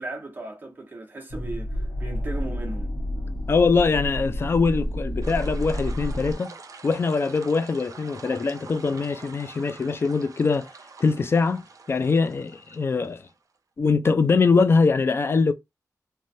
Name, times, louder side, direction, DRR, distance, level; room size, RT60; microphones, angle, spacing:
voice 1, 0.0-2.9, right 2 dB, 30° right, 0.9 m, -37 dB
sound 1, 1.3-6.4, equal, 70° left, 1.1 m, -30 dB
voice 2, 3.5-6.5 6.8-10.7 11.0-13.2 13.8-15.5, left 4 dB, 40° left, 0.3 m, -22 dB
sound 2, 5.2-13.6, right 4 dB, 60° right, 0.5 m, -46 dB
3.1 x 2.2 x 2.6 m
wide cardioid pair, 170°, 6 cm